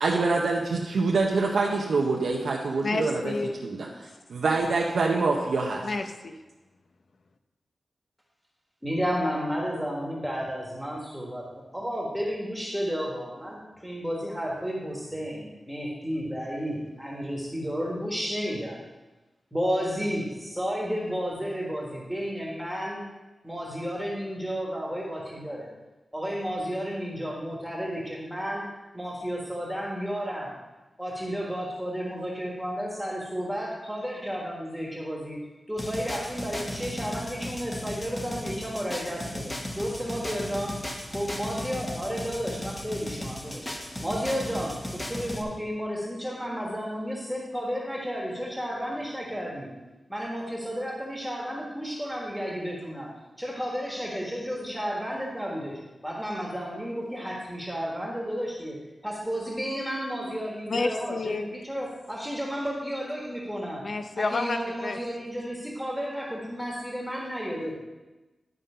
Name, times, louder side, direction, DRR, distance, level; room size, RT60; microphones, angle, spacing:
voice 1, 0.0-3.3 3.6-5.8, right 3 dB, 85° right, -2 dB, 0.8 m, -25 dB
voice 2, 2.8-3.6 5.8-6.4 60.7-61.5 63.8-65.0, left 3 dB, 60° left, 7 dB, 0.6 m, -30 dB
voice 3, 8.8-18.8 19.5-23.1 23.4-25.7 26.1-28.7 28.9-30.5 31.0-35.4 35.7-39.5 39.8-40.8 41.1-43.7 44.0-49.7 50.1-53.1 53.4-58.8 59.0-63.8 64.2-67.8, equal, ahead, -3 dB, 1.4 m, -32 dB
sound 1, 35.8-45.4, left 1 dB, 20° left, 1.0 m, -36 dB
10.5 x 3.8 x 5.5 m, 1.1 s
wide cardioid pair, 110°, 0 cm